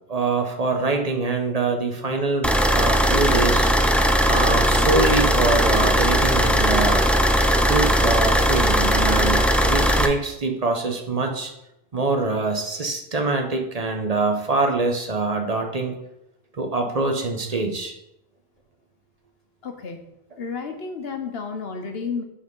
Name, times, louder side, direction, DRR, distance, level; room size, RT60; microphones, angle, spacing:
voice 1, 0.0-3.7 4.3-7.0 7.6-11.5 11.9-16.0 16.5-17.9, right 3 dB, 40° right, 4 dB, 1.0 m, -24 dB
sound 1, 2.4-10.1, equal, ahead, 0.4 m, -19 dB
voice 2, 19.6-20.1 20.4-22.2, left 5 dB, 70° left, 5 dB, 1.2 m, -31 dB
8.0 x 4.2 x 5.4 m, 0.84 s
omnidirectional pair, 1.1 m